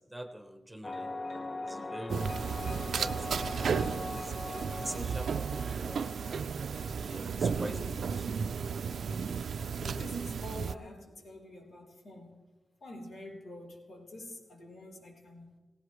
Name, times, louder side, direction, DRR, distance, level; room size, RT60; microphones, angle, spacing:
voice 1, 0.1-1.1 1.6-3.6 4.0-6.0 6.9-8.4, right 1 dB, 5° right, 6 dB, 1.0 m, -45 dB
sound 1, 0.8-8.4, left 2 dB, 30° left, 0.4 m, -42 dB
sound 2, 2.1-10.8, right 6 dB, 75° right, 0.4 m, -34 dB
voice 2, 7.4-8.0 9.7-12.3 12.8-15.5, left 1 dB, 80° left, -1 dB, 3.8 m, -47 dB
17.5 x 17.0 x 3.1 m, 1.3 s
wide cardioid pair, 140°, 0 cm